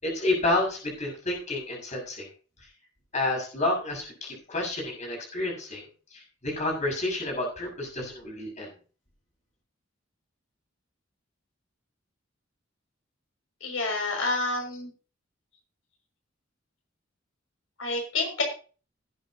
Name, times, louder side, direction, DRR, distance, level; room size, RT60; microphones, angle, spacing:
voice 1, 0.0-2.3 3.1-5.9 6.4-8.7, left 2 dB, 35° left, -1 dB, 6.6 m, -29 dB
voice 2, 13.6-14.9 17.8-18.4, left 3 dB, 90° left, 1 dB, 6.2 m, -28 dB
19.5 x 9.0 x 2.9 m, 0.37 s
head